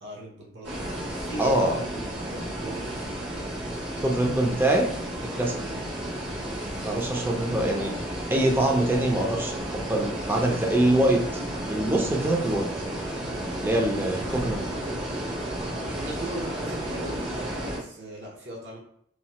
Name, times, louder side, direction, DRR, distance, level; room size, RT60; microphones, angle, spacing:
voice 1, 0.0-4.1 5.6-5.7 6.8-7.0 13.9-14.1 15.9-18.8, right 1 dB, 65° right, -3 dB, 0.8 m, -39 dB
sound 1, 0.6-17.8, right 1 dB, 90° right, 1.2 m, -32 dB
voice 2, 1.4-1.8 4.0-4.9 5.4-5.6 6.8-8.1 8.3-11.2 11.7-12.7 13.6-14.6, right 1 dB, 10° right, 1 dB, 0.4 m, -24 dB
3.1 x 2.2 x 2.8 m, 0.68 s
head